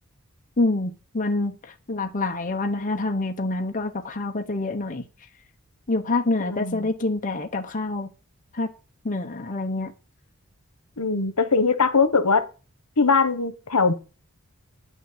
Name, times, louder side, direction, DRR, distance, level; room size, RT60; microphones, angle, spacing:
voice 1, 0.6-5.0 5.9-8.1 8.5-8.7 9.0-9.9, left 2 dB, 35° left, 1.0 m, -26 dB
voice 2, 6.4-6.9 11.0-12.5 13.0-13.9, left 4 dB, 80° left, 1.3 m, -21 dB
9.3 x 6.2 x 7.8 m
head